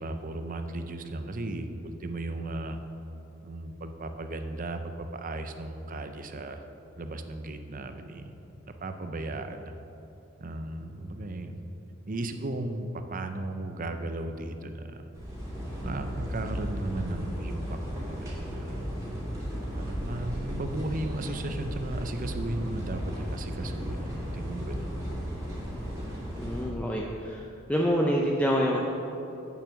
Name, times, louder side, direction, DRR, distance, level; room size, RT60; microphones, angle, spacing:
voice 1, 0.0-2.8 3.4-6.6 7.0-8.3 8.6-9.7 10.4-11.6 12.1-15.0 15.8-18.9 19.7-24.9, right 2 dB, 40° right, 7 dB, 0.6 m, -35 dB
sound 1, 15.1-26.7, equal, 15° right, 2.6 m, -35 dB
voice 2, 26.4-27.4 27.7-28.8, equal, 5° left, -2 dB, 0.6 m, -26 dB
8.6 x 7.0 x 6.3 m, 2.9 s
head